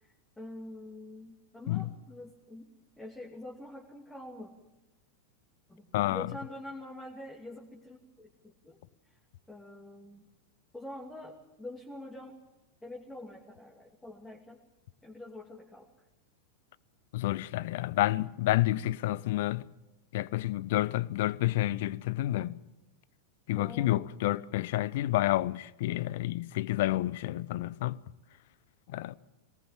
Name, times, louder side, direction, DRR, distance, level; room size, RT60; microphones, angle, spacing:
voice 1, 0.0-4.5 5.7-8.8 9.5-10.2 10.7-12.4 12.8-14.6 15.0-15.9 23.6-24.0, left 1 dB, 5° left, 2.7 m, -46 dB
voice 2, 5.9-6.3 17.1-19.7 20.1-22.6 23.5-28.0 28.9-29.1, left 16 dB, 50° left, 0.7 m, -29 dB
22.0 x 19.0 x 7.5 m
figure-of-eight pair, 90°, 0 cm